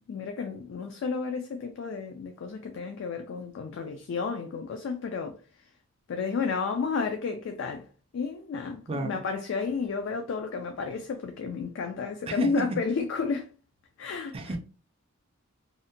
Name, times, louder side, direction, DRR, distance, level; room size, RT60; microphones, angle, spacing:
voice 1, 0.0-5.4 6.1-7.8 8.1-13.5 14.0-14.4, left 5 dB, 65° left, 0.3 m, -32 dB
voice 2, 8.9-9.2 12.3-12.7 14.3-14.6, right 3 dB, 30° right, 0.4 m, -32 dB
2.7 x 2.1 x 2.6 m
head